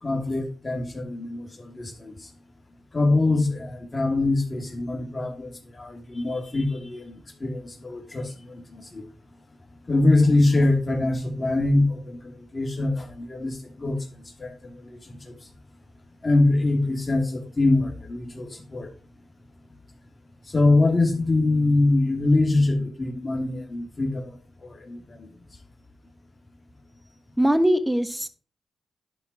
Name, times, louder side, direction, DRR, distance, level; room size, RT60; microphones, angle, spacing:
voice 1, 0.0-2.2 2.9-5.5 5.8-9.1 9.9-14.0 14.4-15.0 15.2-15.3 16.2-18.9 20.5-24.2 24.6-25.3, left 2 dB, 40° left, 2 dB, 2.8 m, -24 dB
voice 2, 27.4-28.3, equal, 10° right, 11 dB, 1.3 m, -21 dB
11.5 x 4.7 x 4.8 m, 0.37 s
supercardioid pair, 45°, 0 cm